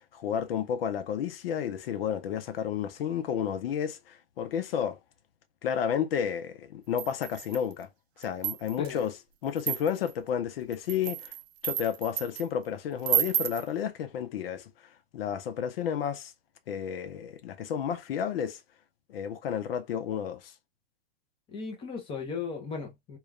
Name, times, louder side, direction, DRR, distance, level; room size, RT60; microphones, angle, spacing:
voice 1, 0.1-5.0 5.6-7.9 8.2-9.1 9.4-11.3 11.6-14.7 15.1-16.3 16.7-18.6 19.1-20.5, left 8 dB, 65° left, 0.7 m, -31 dB
sound 1, 7.0-7.7 8.2-8.9 9.6-10.1 10.7-12.5 13.0-13.7, right 12 dB, 85° right, 0.5 m, -31 dB
voice 2, 21.5-23.2, left 5 dB, 15° left, 0.6 m, -36 dB
2.9 x 2.3 x 2.4 m
hypercardioid pair, 145°, 31 cm